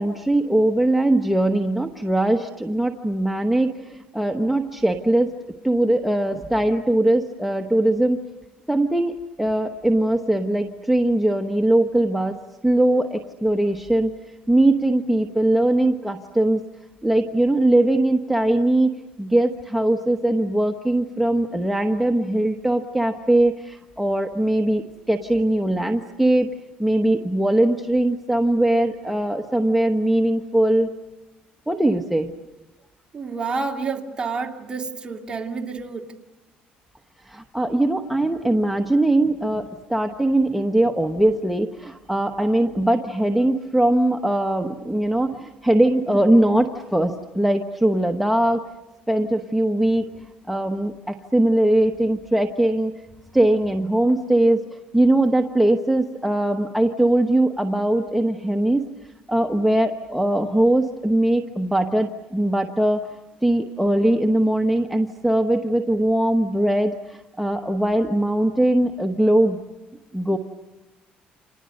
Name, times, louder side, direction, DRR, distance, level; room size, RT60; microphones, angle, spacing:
voice 1, 0.0-5.3 5.6-8.2 8.7-14.1 14.5-16.6 17.0-18.9 19.2-26.5 26.8-30.9 31.7-32.3 37.2-48.6 49.1-50.1 50.5-52.9 53.3-58.8 59.3-63.1 63.4-69.6 70.1-70.4, right 1 dB, ahead, 4 dB, 1.2 m, -21 dB
voice 2, 33.1-36.1, right 4 dB, 25° right, 2 dB, 2.3 m, -29 dB
29.5 x 27.5 x 6.6 m, 1.0 s
cardioid pair, 120°, 3 cm